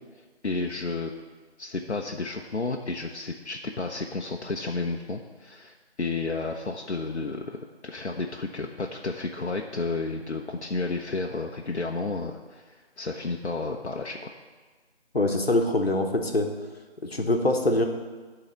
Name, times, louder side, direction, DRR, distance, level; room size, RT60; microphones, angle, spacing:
voice 1, 0.4-1.1 1.6-14.3, left 3 dB, 80° left, 1 dB, 0.8 m, -32 dB
voice 2, 15.1-16.5 17.0-17.9, left 1 dB, 65° left, 4 dB, 1.2 m, -24 dB
11.0 x 4.0 x 5.6 m, 1.4 s
figure-of-eight pair, 175°, 33 cm